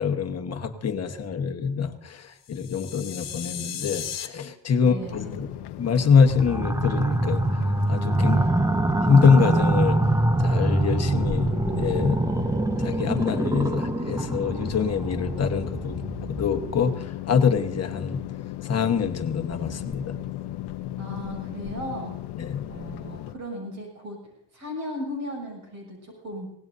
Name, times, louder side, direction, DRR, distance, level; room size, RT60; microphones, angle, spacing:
voice 1, 0.0-5.5 5.8-7.4 7.9-8.4 9.1-10.0 10.4-12.2 12.8-16.0 16.3-18.2 18.6-20.1 22.4-22.6, left 6 dB, 40° left, 6 dB, 1.4 m, -24 dB
sound 1, 2.4-4.3, left 9 dB, 55° left, 1.6 m, -35 dB
voice 2, 4.8-5.5 8.2-8.7 21.0-22.1 22.7-24.2 24.5-26.6, equal, 45° right, 0 dB, 7.1 m, -36 dB
sound 2, 5.0-23.3, left 13 dB, 75° left, 0.9 m, -37 dB
sound 3, 6.3-16.8, right 2 dB, 10° right, 0.5 m, -25 dB
24.0 x 18.5 x 2.7 m, 0.77 s
cardioid pair, 160°, 40 cm